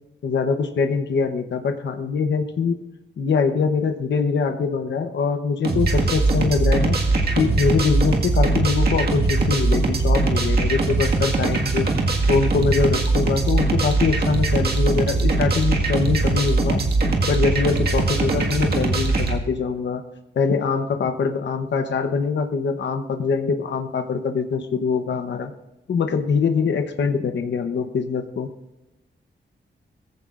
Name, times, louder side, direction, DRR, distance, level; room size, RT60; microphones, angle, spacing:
voice 1, 0.2-2.8 3.2-7.0 7.4-11.9 12.3-16.8 17.3-20.0 20.4-25.5 25.9-28.5, left 5 dB, 70° left, 6 dB, 0.9 m, -23 dB
sound 1, 5.6-19.4, right 3 dB, 55° right, 1.8 m, -21 dB
22.5 x 15.0 x 2.5 m, 0.98 s
wide cardioid pair, 150°, 19 cm